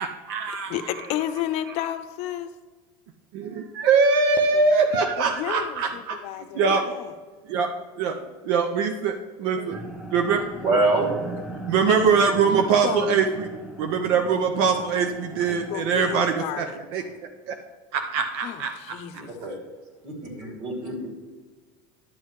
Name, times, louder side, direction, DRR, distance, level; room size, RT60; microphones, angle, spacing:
voice 1, 0.0-1.0 3.3-7.0 7.5-7.7 8.0-8.2 8.4-9.8 10.1-10.5 11.7-13.5 13.8-17.6 17.9-19.2, right 5 dB, 75° right, 6 dB, 0.7 m, -23 dB
voice 2, 0.7-2.5 4.5-4.6 5.2-7.1 11.9-12.1 12.8-13.1 14.3-15.1 15.5-16.6 18.4-19.3, left 11 dB, 60° left, 9 dB, 0.6 m, -32 dB
sound 1, 9.7-16.4, right 2 dB, 5° right, 0.8 m, -38 dB
voice 3, 10.5-11.1 19.1-19.6 20.0-21.1, right 2 dB, 55° right, 0 dB, 2.7 m, -25 dB
11.5 x 7.5 x 3.2 m, 1.4 s
supercardioid pair, 135°, 13 cm